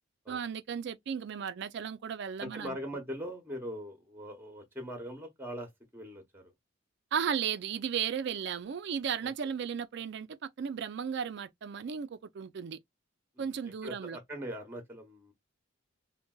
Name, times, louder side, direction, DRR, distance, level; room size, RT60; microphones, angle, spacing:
voice 1, 0.3-2.8 7.1-12.8 13.4-14.2, right 7 dB, 60° right, 0.4 m, -35 dB
voice 2, 2.4-6.5 9.2-9.3 13.4-15.3, equal, 10° right, 0.7 m, -41 dB
3.8 x 2.2 x 2.2 m
head